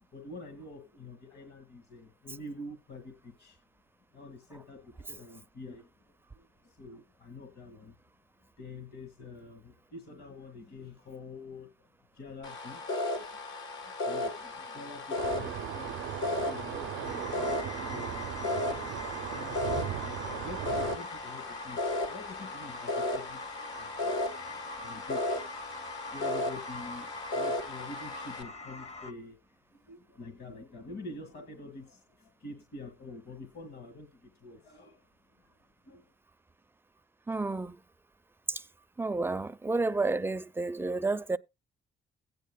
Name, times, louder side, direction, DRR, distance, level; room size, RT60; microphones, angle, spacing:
voice 1, 0.0-3.6 4.1-5.9 6.3-8.0 8.6-11.7 12.1-13.4 14.0-24.2 24.6-25.6 26.1-29.4 29.7-35.0 35.9-36.1, left 2 dB, 55° left, 1.8 m, -47 dB
sound 1, 12.4-28.4, left 2 dB, 80° left, 2.1 m, -35 dB
sound 2, 15.2-21.0, right 12 dB, 80° right, 0.5 m, -38 dB
sound 3, 17.0-29.1, left 2 dB, 30° left, 0.8 m, -44 dB
voice 2, 37.3-37.8 38.5-38.6 39.0-41.4, right 3 dB, 10° right, 0.4 m, -30 dB
16.5 x 9.2 x 2.2 m
cardioid pair, 90°, 20 cm